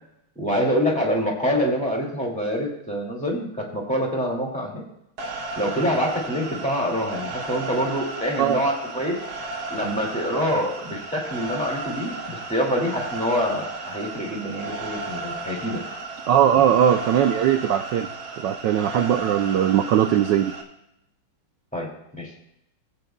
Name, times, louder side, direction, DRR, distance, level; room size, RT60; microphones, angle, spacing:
voice 1, 0.4-4.8 5.5-9.2 9.7-15.8 21.7-21.9 22.2-22.3, equal, 5° left, -2 dB, 2.0 m, -26 dB
sound 1, 5.2-20.6, right 3 dB, 50° right, 1.6 m, -34 dB
voice 2, 16.3-18.1 18.4-20.5, right 10 dB, 75° right, 6 dB, 1.1 m, -19 dB
19.5 x 8.2 x 2.3 m, 0.82 s
omnidirectional pair, 2.4 m